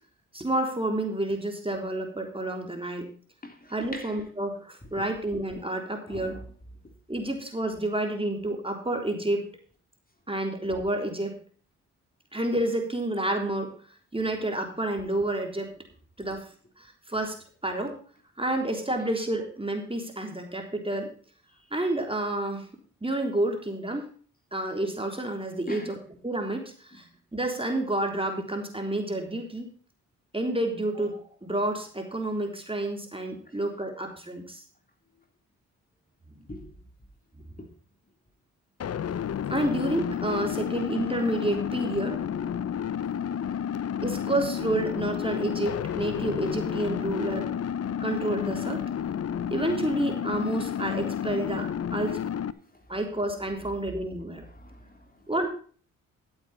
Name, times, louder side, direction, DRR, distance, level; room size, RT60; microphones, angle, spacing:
voice 1, 0.3-3.1 3.7-6.4 7.1-9.4 10.3-11.4 12.3-13.7 14.1-15.8 16.2-16.5 16.8-18.0 18.4-21.1 21.7-22.7 23.0-24.1 24.5-26.0 26.2-27.0 27.3-29.7 30.3-34.6 36.4-36.5 39.5-42.2 44.0-47.5 48.0-48.8 49.5-52.2 52.9-54.4 55.3-55.5, right 1 dB, 15° right, 3.6 m, -29 dB
voice 2, 3.4-4.2 5.0-5.1 6.1-6.4 25.7-25.9 36.5-36.7 37.6-37.7 43.0-43.2 43.4-43.8 52.7-52.8 54.5-55.2, left 1 dB, 25° left, 3.4 m, -43 dB
sound 1, 38.8-52.5, left 9 dB, 40° left, 0.7 m, -31 dB
14.0 x 8.2 x 4.3 m
hypercardioid pair, 45°, 38 cm